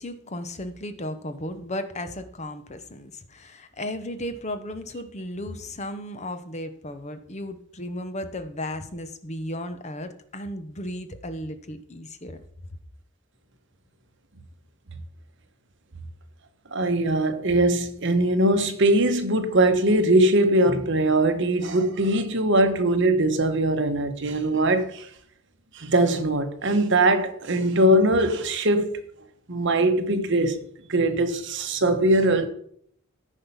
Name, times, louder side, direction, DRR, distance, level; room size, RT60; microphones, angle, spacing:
voice 1, 0.0-12.4, left 1 dB, 30° left, 0.9 m, -35 dB
voice 2, 16.7-25.1 25.7-28.9 29.5-30.6 30.9-32.5, right 1 dB, 55° right, 1.2 m, -21 dB
14.0 x 5.4 x 5.7 m
head